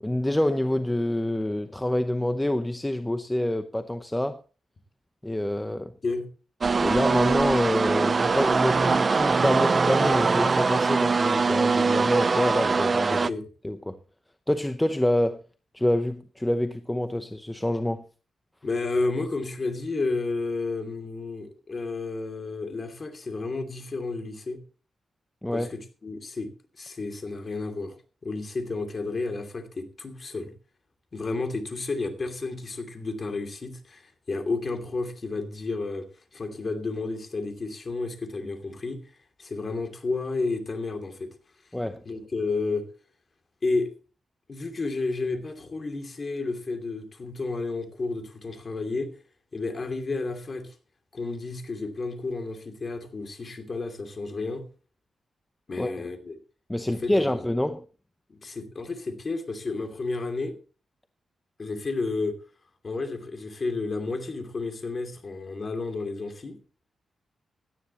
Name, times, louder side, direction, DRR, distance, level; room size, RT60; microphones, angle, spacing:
voice 1, 0.0-4.4 5.2-5.9 6.8-13.3 13.6-14.0 14.5-15.4 15.7-18.0 25.4-25.7 41.7-42.0 55.8-56.1 56.7-57.8, left 1 dB, 10° left, 0.7 m, -27 dB
sound 1, 6.6-13.3, right 4 dB, 35° right, 0.5 m, -22 dB
voice 2, 13.1-13.5 18.6-24.6 25.5-26.5 26.8-28.0 28.2-30.5 31.1-36.1 36.3-39.0 39.4-41.3 42.0-42.8 43.6-43.9 44.5-49.1 49.5-50.8 51.1-54.6 55.7-56.3 56.9-57.4 58.3-60.5 61.6-62.4 62.8-66.6, left 3 dB, 35° left, 2.7 m, -31 dB
17.5 x 12.5 x 3.0 m
wide cardioid pair, 155°, 0 cm